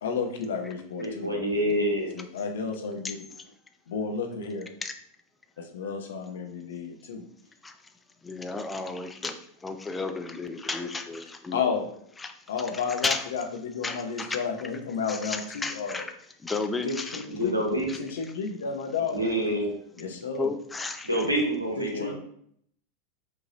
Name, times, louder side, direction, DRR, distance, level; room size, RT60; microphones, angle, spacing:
voice 1, 0.0-1.7 2.1-3.2 3.9-4.7 5.6-7.3 11.5-11.9 12.5-16.0 16.8-17.5 18.0-19.5 20.0-20.5 21.8-22.1, left 5 dB, 65° left, 3 dB, 0.7 m, -32 dB
voice 2, 1.0-2.2 17.3-17.9 19.1-19.7 20.0-20.1 21.0-22.1, equal, 90° right, 0 dB, 1.1 m, -27 dB
voice 3, 8.2-9.4 9.6-11.8 12.2-13.3 13.8-14.4 15.1-16.1 16.4-17.2 17.9-18.0 20.4-21.2, left 3 dB, 15° left, 6 dB, 0.5 m, -33 dB
5.1 x 2.9 x 2.9 m, 0.67 s
figure-of-eight pair, 85°, 0 cm